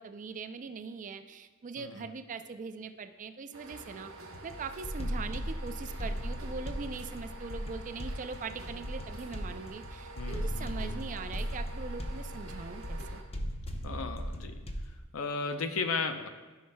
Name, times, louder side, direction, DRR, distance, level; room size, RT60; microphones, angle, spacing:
voice 1, 0.0-4.1 4.4-13.2, right 4 dB, 40° right, 9 dB, 0.4 m, -41 dB
sound 1, 3.5-13.2, right 2 dB, 80° right, 1.1 m, -48 dB
sound 2, 4.3-15.0, equal, 30° left, 0.6 m, -38 dB
voice 2, 10.2-11.0 13.8-14.6 15.1-16.3, left 4 dB, 80° left, 7 dB, 0.6 m, -35 dB
13.5 x 5.6 x 2.2 m, 1.3 s
head